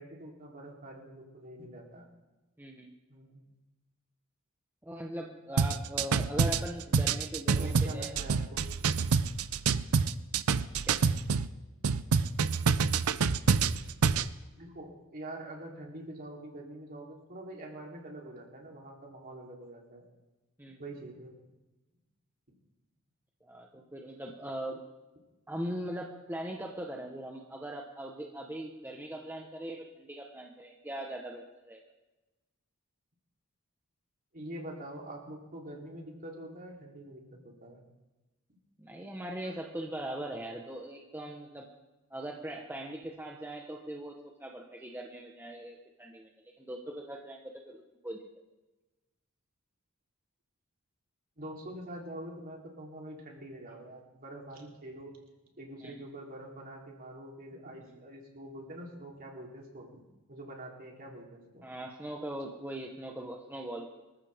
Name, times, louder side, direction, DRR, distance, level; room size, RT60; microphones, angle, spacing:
voice 1, 0.0-2.1 3.1-3.4 6.8-6.9 7.6-8.7 14.6-20.0 20.8-21.3 34.3-37.8 39.4-39.6 51.4-55.1 55.6-60.0 60.3-61.7, right 1 dB, 40° right, -1 dB, 3.6 m, -45 dB
voice 2, 2.6-2.9 4.8-8.1 8.6-8.7 10.9-11.0 20.6-20.8 23.4-24.8 25.5-31.8 38.8-41.7 42.1-44.1 44.4-46.3 46.6-48.2 55.8-56.0 57.8-57.9 61.6-63.9, right 1 dB, 10° right, 0 dB, 1.2 m, -40 dB
sound 1, 5.6-11.5 11.8-14.3, right 5 dB, 75° right, 0.6 m, -27 dB
25.0 x 14.5 x 3.7 m, 1.1 s
head